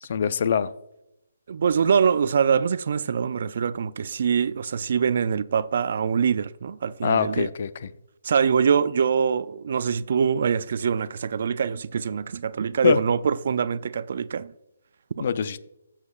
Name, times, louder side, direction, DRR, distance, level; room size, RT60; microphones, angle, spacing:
voice 1, 0.0-0.7 7.0-7.9 12.8-13.0 15.2-15.6, left 7 dB, 50° left, 0.5 m, -23 dB
voice 2, 1.5-7.5 8.2-14.5 15.2-15.3, right 6 dB, 55° right, 0.4 m, -24 dB
14.0 x 7.3 x 2.4 m
hypercardioid pair, 155°, 0 cm